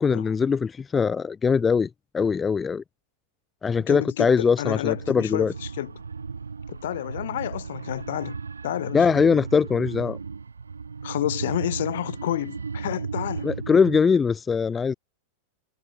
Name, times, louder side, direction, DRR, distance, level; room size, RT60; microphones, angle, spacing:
voice 1, 0.0-2.8 3.6-5.5 8.9-10.2 13.4-14.9, left 5 dB, 15° left, 2.0 m, -22 dB
voice 2, 3.9-5.9 6.7-9.1 11.0-13.5, left 13 dB, 60° left, 6.3 m, -30 dB
sound 1, 4.9-14.0, right 5 dB, 75° right, 5.4 m, -35 dB
figure-of-eight pair, 90°, 0 cm